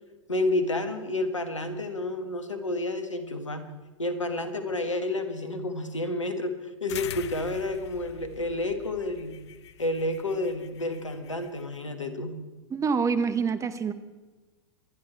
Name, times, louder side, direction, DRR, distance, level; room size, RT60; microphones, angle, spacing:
voice 1, 0.3-3.7 4.0-6.5 6.8-9.4 9.8-12.3, left 2 dB, 85° left, 8 dB, 1.6 m, -30 dB
sound 1, 6.9-11.8, left 11 dB, 65° left, 0.6 m, -44 dB
voice 2, 12.7-13.9, right 5 dB, 20° right, 12 dB, 1.1 m, -26 dB
26.0 x 10.5 x 4.5 m, 1.2 s
figure-of-eight pair, 90°, 15 cm